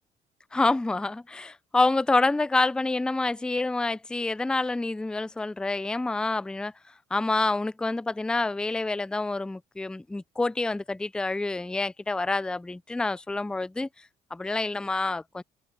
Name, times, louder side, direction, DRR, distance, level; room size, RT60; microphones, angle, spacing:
voice 1, 0.5-6.7 7.1-13.9 14.3-15.4, left 3 dB, 5° left, 0.3 m, -27 dB
open air
cardioid pair, 85°, 17 cm